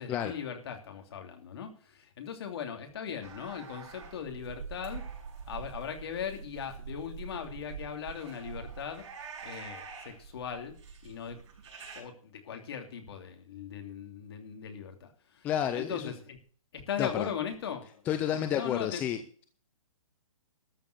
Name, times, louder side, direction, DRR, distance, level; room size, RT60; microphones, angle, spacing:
voice 1, 0.0-5.0 5.5-9.1 9.4-10.8 11.0-11.4 11.9-15.5 15.7-16.4 16.7-17.9 18.3-19.1, left 8 dB, 45° left, 5 dB, 2.9 m, -39 dB
sound 1, 3.2-12.0, right 6 dB, 55° right, 6.2 m, -45 dB
voice 2, 15.4-16.1 17.0-17.3 18.1-19.2, left 10 dB, 10° left, 8 dB, 0.5 m, -30 dB
13.5 x 7.3 x 6.8 m, 0.43 s
hypercardioid pair, 160°, 18 cm